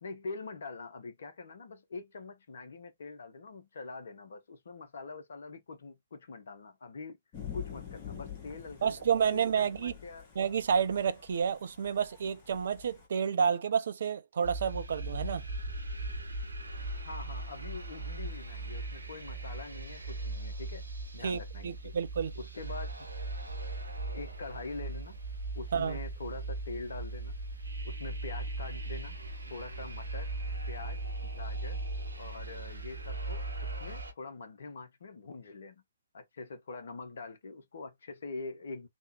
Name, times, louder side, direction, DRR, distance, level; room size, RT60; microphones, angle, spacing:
voice 1, 0.0-7.2 7.5-8.9 9.3-10.3 17.0-20.9 21.1-21.9 22.4-23.1 24.1-25.2 25.6-27.4 27.8-29.2 29.5-30.3 30.7-31.8 32.2-35.8 36.1-38.9, left 3 dB, 55° left, 0.5 m, -44 dB
Thunder / Rain, 7.3-13.1, left 9 dB, 30° left, 1.4 m, -46 dB
voice 2, 8.8-9.9 10.4-15.4 21.2-22.3 25.7-26.0, right 7 dB, 50° right, 0.4 m, -30 dB
sound 1, 14.4-34.1, right 2 dB, 70° right, 0.8 m, -38 dB
3.4 x 2.0 x 2.9 m
figure-of-eight pair, 125°, 0 cm